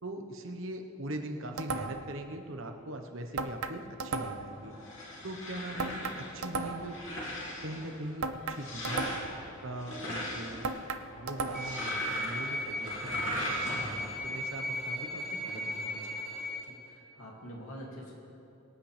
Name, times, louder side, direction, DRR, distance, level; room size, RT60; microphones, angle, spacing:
voice 1, 0.0-4.7 5.2-7.2 7.6-9.0 9.6-10.6 11.1-16.0, right 1 dB, 65° right, 4 dB, 1.1 m, -41 dB
sound 1, 1.6-2.2 3.4-4.6 5.8-7.0 8.2-9.4 10.6-11.9, right 3 dB, 85° right, 0.7 m, -35 dB
sound 2, 4.5-14.2, left 1 dB, 60° left, 3.0 m, -39 dB
sound 3, 11.5-16.6, equal, ahead, 2.3 m, -36 dB
voice 2, 16.6-18.1, equal, 80° left, -2 dB, 2.6 m, -46 dB
24.0 x 9.1 x 3.4 m, 2.8 s
head